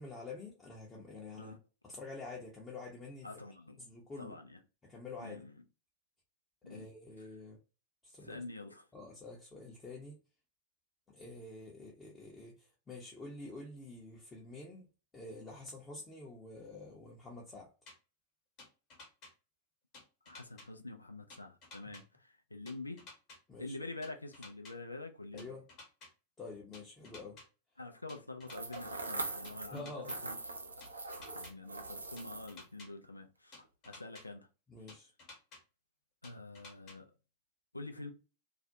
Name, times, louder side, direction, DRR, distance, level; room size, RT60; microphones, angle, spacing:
voice 1, 0.0-1.5 1.8-3.3 3.8-4.4 4.8-5.5 6.7-7.6 8.0-8.4 8.9-10.2 11.1-14.9 15.1-17.7 23.5-23.8 25.3-25.6 26.4-27.4 29.7-30.1 34.7-35.1, left 3 dB, 15° left, 0.6 m, -48 dB
voice 2, 3.2-3.8 4.2-4.6 5.2-5.5 6.6-6.9 8.2-8.9 20.3-23.0 23.6-25.5 27.8-29.9 30.2-30.4 31.3-34.5 36.2-37.1 37.7-38.1, left 2 dB, 85° left, 0.3 m, -46 dB
sound 1, 17.9-18.0 18.6-19.3 19.9-20.7 21.3-22.0 22.7-23.4 24.0-24.7 25.4-26.1 26.7-27.4 28.1-28.8 29.4-30.2 30.8-31.5 32.2-32.9 33.5-34.2 34.9-35.6 36.2-37.0, left 3 dB, 35° left, 1.0 m, -53 dB
sound 2, 28.5-29.8 30.0-32.6, right 3 dB, 80° right, 0.4 m, -42 dB
2.4 x 2.1 x 2.5 m
figure-of-eight pair, 90°, 0 cm